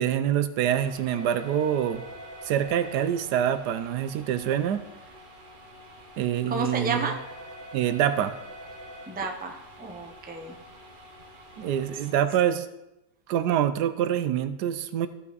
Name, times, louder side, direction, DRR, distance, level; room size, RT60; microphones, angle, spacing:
voice 1, 0.0-2.0 2.4-4.8 6.2-7.1 7.7-8.3 11.6-12.7 13.3-15.1, right 10 dB, 85° right, 12 dB, 1.2 m, -25 dB
sound 1, 0.8-12.1, equal, 35° right, 1.0 m, -46 dB
voice 2, 6.5-7.2 9.1-10.5 12.4-12.6, right 3 dB, 10° right, 3 dB, 0.5 m, -32 dB
15.0 x 5.6 x 4.0 m, 0.93 s
omnidirectional pair, 1.7 m